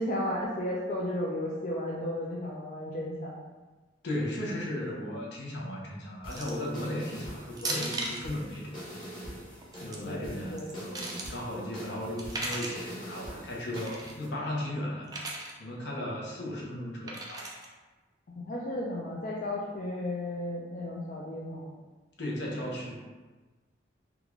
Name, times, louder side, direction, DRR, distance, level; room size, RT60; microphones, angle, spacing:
voice 1, 0.0-3.4 9.8-10.2 10.5-10.7 18.4-21.7, left 1 dB, 45° left, -5 dB, 0.4 m, -34 dB
voice 2, 4.0-9.1 9.8-15.1 15.6-17.5 22.2-23.0, left 1 dB, 65° left, -3 dB, 0.8 m, -36 dB
sound 1, 6.2-14.3, equal, 25° left, 1.1 m, -44 dB
sound 2, 6.3-6.7 7.6-8.3 9.6-10.0 10.6-11.3 12.2-12.9 13.8-14.1 15.1-15.5 17.1-17.7, right 2 dB, 20° right, 0.4 m, -36 dB
3.6 x 2.3 x 3.1 m, 1.3 s
head